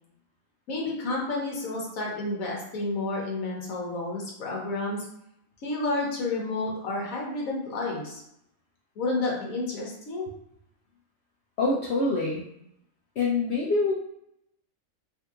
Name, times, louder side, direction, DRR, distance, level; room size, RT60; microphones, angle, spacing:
voice 1, 0.7-5.0 5.6-8.2 9.0-10.3, left 2 dB, 80° left, -2 dB, 1.3 m, -30 dB
voice 2, 11.6-12.5 13.2-13.9, left 3 dB, 65° left, -4 dB, 0.8 m, -25 dB
3.5 x 2.7 x 2.4 m, 0.75 s
omnidirectional pair, 1.4 m